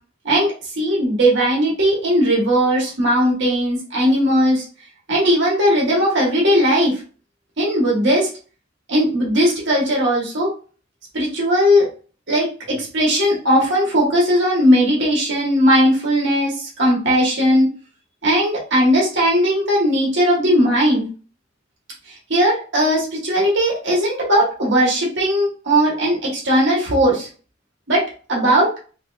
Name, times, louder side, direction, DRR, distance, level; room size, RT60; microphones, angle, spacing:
voice 1, 0.2-4.6 5.1-7.0 7.6-8.3 8.9-10.5 11.1-11.9 12.3-17.7 18.2-21.1 22.3-27.3 27.9-28.0 28.3-28.7, equal, 65° right, -4 dB, 1.4 m, -18 dB
3.2 x 3.1 x 2.5 m, 0.38 s
head